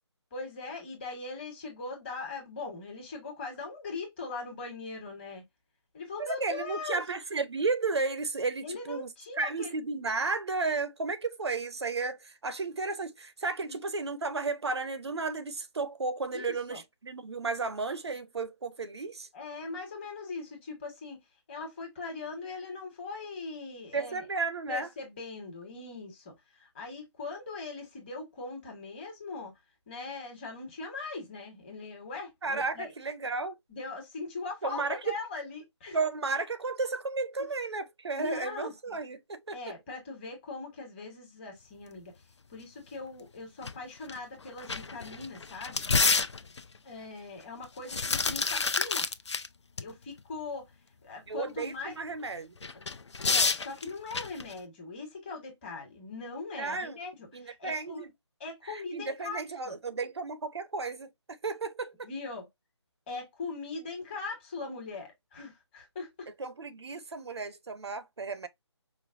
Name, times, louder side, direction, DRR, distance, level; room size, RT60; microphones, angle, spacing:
voice 1, 0.3-5.4 5.9-7.0 8.6-9.7 13.6-13.8 16.3-16.8 19.3-21.2 21.5-24.3 24.7-29.5 29.9-32.9 33.7-36.0 37.4-37.5 38.1-39.0 39.5-42.1 42.5-45.8 46.8-49.1 49.8-50.7 51.0-52.0 53.2-58.0 58.4-59.8 62.0-62.5 63.1-66.3, left 3 dB, 20° left, 1.4 m, -40 dB
voice 2, 6.2-9.1 9.4-19.3 23.9-24.9 32.4-33.5 34.6-35.2 35.9-39.6 51.3-52.5 56.6-57.0 57.3-58.1 58.6-61.1 61.4-62.1 66.4-68.5, right 3 dB, 65° right, 0.6 m, -33 dB
sound 1, 43.6-43.7 44.1-44.2 44.6-46.8 47.6-49.5 49.8-49.9 52.6-54.5, left 4 dB, 70° left, 0.6 m, -28 dB
5.0 x 2.1 x 2.5 m
figure-of-eight pair, 155°, 15 cm